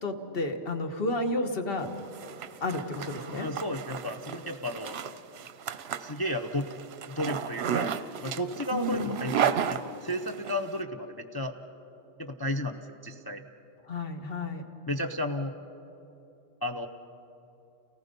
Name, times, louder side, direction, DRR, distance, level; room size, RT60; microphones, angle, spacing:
voice 1, 0.0-1.9 2.6-3.5 8.7-9.2 13.9-14.6, left 2 dB, 50° left, 6 dB, 1.5 m, -31 dB
Zipper (clothing), 1.9-10.5, right 8 dB, 60° right, 0.8 m, -33 dB
voice 2, 3.4-5.0 6.0-6.7 7.1-7.9 8.2-11.5 12.2-13.4 14.9-15.5 16.6-16.9, left 1 dB, 25° left, 3 dB, 0.5 m, -33 dB
29.5 x 18.5 x 5.3 m, 3.0 s
omnidirectional pair, 1.3 m